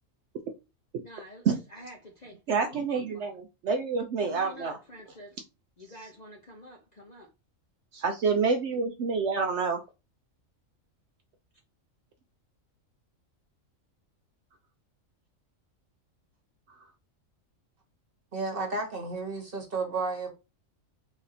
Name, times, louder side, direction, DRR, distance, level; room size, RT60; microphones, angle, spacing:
voice 1, 1.0-1.4 2.2-2.3 4.3-5.3 5.9-7.3, equal, 45° left, 0.6 m, -47 dB
voice 2, 2.5-4.8 7.9-9.8, right 5 dB, 65° right, 0.8 m, -28 dB
voice 3, 18.3-20.3, right 3 dB, 45° right, 1.4 m, -32 dB
4.1 x 2.7 x 4.0 m
omnidirectional pair, 1.4 m